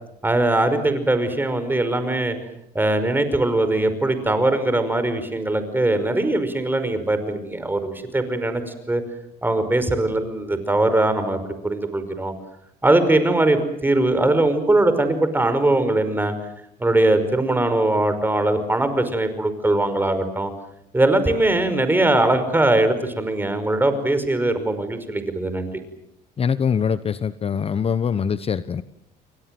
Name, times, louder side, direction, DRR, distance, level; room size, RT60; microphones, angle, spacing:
voice 1, 0.2-2.4 2.8-8.6 8.9-9.0 9.4-12.3 12.8-16.3 16.8-20.5 20.9-25.7, right 2 dB, 10° right, 10 dB, 5.3 m, -21 dB
voice 2, 26.4-28.8, left 7 dB, 35° left, 14 dB, 1.0 m, -23 dB
29.5 x 23.5 x 7.8 m, 0.76 s
cardioid pair, 110°, 17 cm